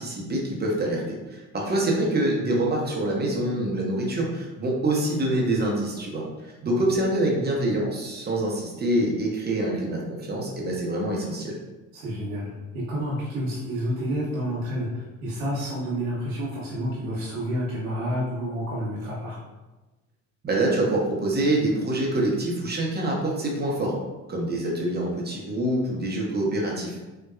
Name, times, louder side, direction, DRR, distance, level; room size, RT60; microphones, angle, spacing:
voice 1, 0.0-6.2 6.6-11.6 20.4-24.0 24.3-27.0, right 1 dB, 25° right, -2 dB, 0.8 m, -25 dB
voice 2, 11.9-19.4 24.5-24.6, equal, 80° right, -10 dB, 1.0 m, -29 dB
4.0 x 2.2 x 2.4 m, 1.1 s
hypercardioid pair, 65°, 40 cm